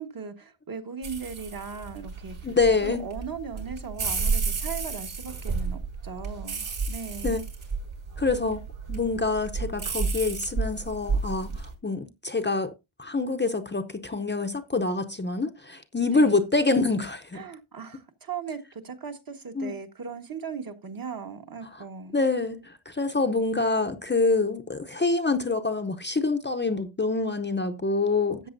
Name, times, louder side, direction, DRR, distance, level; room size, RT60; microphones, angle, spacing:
voice 1, 0.0-2.4 2.8-7.4 16.1-16.4 17.3-22.2 28.4-28.5, right 5 dB, 45° right, 1.4 m, -38 dB
sound 1, 1.0-11.7, right 4 dB, 75° right, 5.3 m, -31 dB
voice 2, 2.4-3.0 7.2-7.4 8.2-8.6 8.9-12.7 13.0-17.4 19.6-19.7 22.1-28.5, left 3 dB, 20° left, 0.7 m, -26 dB
13.5 x 8.3 x 2.6 m
wide cardioid pair, 155°, 48 cm